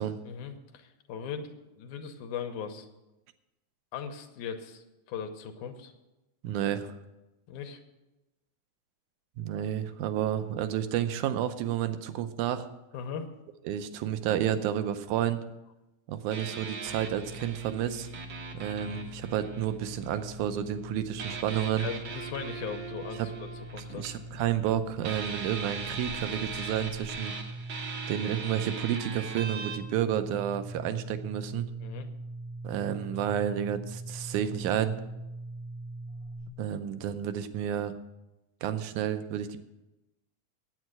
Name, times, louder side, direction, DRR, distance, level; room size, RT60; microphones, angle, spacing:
voice 1, 0.3-1.5 1.8-2.9 3.9-4.8 5.1-5.9 7.5-7.8 12.9-13.3 21.8-24.1 31.8-32.1, left 7 dB, 80° left, 6 dB, 2.4 m, -39 dB
voice 2, 6.4-7.0 9.4-12.7 13.7-15.4 16.1-18.1 18.5-21.9 23.2-23.3 23.9-27.3 28.1-31.7 32.6-34.9 36.6-38.0 38.6-39.6, right 10 dB, 80° right, 10 dB, 2.2 m, -30 dB
sound 1, 16.3-20.2 21.2-24.7 25.0-29.8, right 5 dB, 60° right, 1.1 m, -40 dB
sound 2, 16.9-36.5, right 1 dB, 60° left, 1.7 m, -42 dB
9.3 x 8.6 x 7.9 m, 1.0 s
omnidirectional pair, 3.6 m